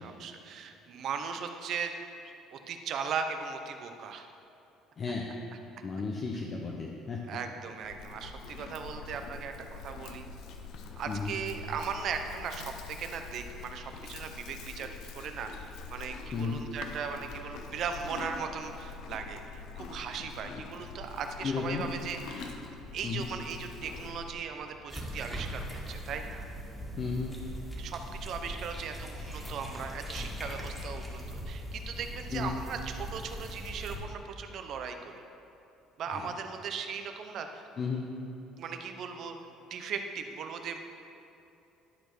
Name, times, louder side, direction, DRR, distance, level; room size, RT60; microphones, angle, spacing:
voice 1, 0.0-1.9 2.2-4.3 7.3-10.3 11.0-22.6 22.9-26.5 27.8-35.2 36.0-37.7 38.6-39.3 39.7-40.8, right 6 dB, 60° right, 6 dB, 0.8 m, -38 dB
voice 2, 5.0-5.3 5.8-7.4 11.1-11.3 16.3-16.6 20.5-20.6 21.4-21.8 23.0-23.3 27.0-27.3 32.3-32.6 36.1-36.3 37.8-38.0, left 5 dB, 40° left, -1 dB, 0.9 m, -34 dB
Livestock farm animals working animals, 7.8-24.4, left 4 dB, 70° left, 0.8 m, -44 dB
sound 1, 22.8-28.9, right 5 dB, 35° right, 1.2 m, -56 dB
sound 2, 24.9-34.0, equal, ahead, 2.0 m, -40 dB
12.0 x 4.5 x 6.1 m, 2.8 s
cardioid pair, 100°, 0 cm